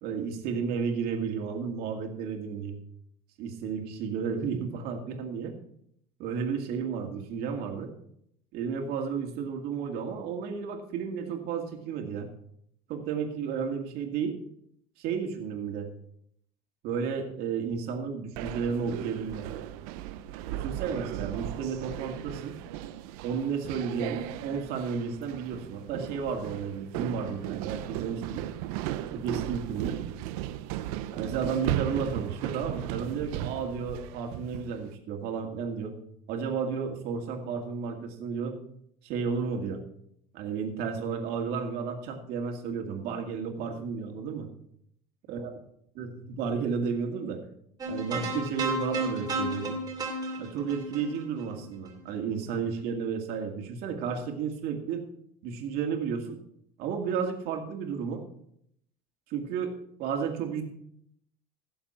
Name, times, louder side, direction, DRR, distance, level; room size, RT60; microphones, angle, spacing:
voice 1, 0.0-2.8 3.4-5.5 6.2-7.9 8.5-12.3 12.9-14.4 15.0-15.9 16.8-19.5 20.5-22.6 23.2-28.5 29.1-30.0 31.1-35.9 36.3-38.6 39.0-39.8 40.3-44.5 45.3-45.5 45.9-47.4 47.9-49.8 50.4-55.0 55.4-56.4 56.8-58.2 59.3-60.6, right 6 dB, 60° right, 3 dB, 2.3 m, -32 dB
sound 1, 18.4-34.8, right 13 dB, 85° right, 0.7 m, -36 dB
sound 2, 47.8-52.1, right 2 dB, 20° right, 2.6 m, -33 dB
17.0 x 7.1 x 4.4 m, 0.71 s
cardioid pair, 135°, 18 cm